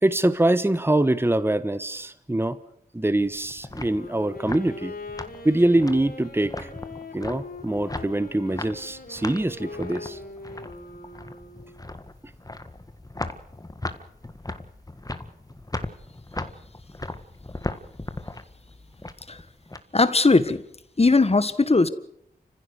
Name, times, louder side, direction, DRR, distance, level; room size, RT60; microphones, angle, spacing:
voice 1, 0.0-2.6 2.9-4.9 5.4-6.7 7.1-10.2, right 1 dB, 15° right, 1.1 m, -24 dB
sound 1, 3.2-19.8, left 2 dB, 20° left, 1.7 m, -38 dB
Wind instrument woodwind instrument, 3.7-11.8, left 3 dB, 60° left, 5.7 m, -41 dB
voice 2, 19.9-20.6 21.0-21.9, left 3 dB, 35° left, 1.6 m, -19 dB
29.5 x 15.5 x 6.5 m
cardioid pair, 50°, 17 cm